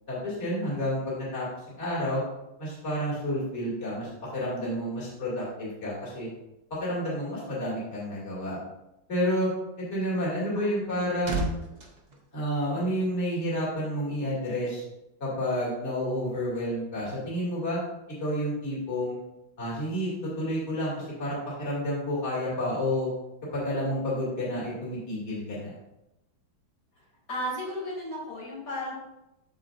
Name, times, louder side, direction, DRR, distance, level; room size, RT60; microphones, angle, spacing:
voice 1, 0.1-1.5 1.7-2.2 2.6-6.3 6.7-8.6 9.1-9.5 9.8-11.5 12.3-14.8 15.2-17.8 18.2-19.2 19.6-23.1 23.5-25.7, equal, 35° left, -7 dB, 2.7 m, -30 dB
voice 2, 10.5-11.1 27.3-28.9, equal, 75° left, -6 dB, 3.4 m, -35 dB
sound 1, 10.7-13.2 13.5-13.7, equal, 30° right, 0.9 m, -36 dB
13.0 x 4.7 x 2.5 m, 0.93 s
omnidirectional pair, 2.1 m